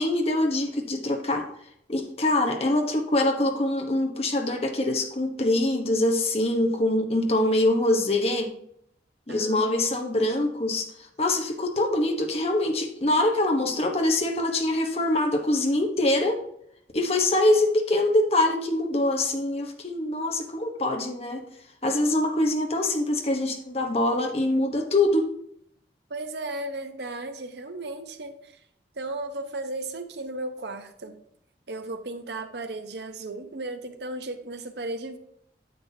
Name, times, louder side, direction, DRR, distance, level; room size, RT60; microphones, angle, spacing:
voice 1, 0.0-1.4 1.9-8.5 9.3-10.9 11.2-16.4 16.9-21.4 21.8-25.3, left 1 dB, 35° left, 3 dB, 1.1 m, -24 dB
voice 2, 9.3-9.9 26.1-28.6 29.0-31.2 31.7-35.2, right 2 dB, 70° right, 8 dB, 0.9 m, -35 dB
9.6 x 7.5 x 2.8 m, 0.71 s
head